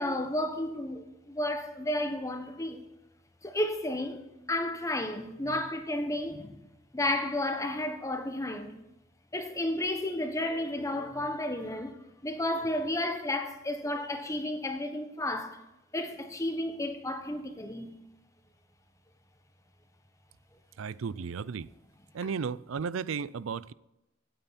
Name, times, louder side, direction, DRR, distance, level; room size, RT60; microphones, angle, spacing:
voice 1, 0.0-2.9 3.4-6.6 6.9-8.8 9.3-15.6 15.9-17.9, left 1 dB, 15° left, 1.2 m, -32 dB
voice 2, 20.8-21.7 22.1-23.7, right 6 dB, 90° right, 0.5 m, -34 dB
17.0 x 9.1 x 4.2 m
head